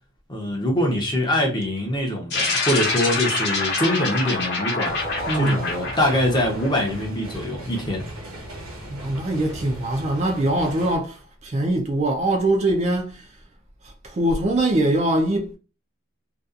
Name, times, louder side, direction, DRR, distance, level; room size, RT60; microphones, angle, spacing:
voice 1, 0.3-5.0 5.3-8.1, left 1 dB, 20° left, 0.6 m, -23 dB
sound 1, 2.3-7.0, left 3 dB, 50° left, 0.9 m, -26 dB
sound 2, 4.8-11.0, right 1 dB, 70° right, 0.9 m, -38 dB
voice 2, 5.3-5.7 8.9-13.3 13.8-15.5, right 1 dB, 30° right, 0.3 m, -23 dB
2.6 x 2.3 x 2.3 m
head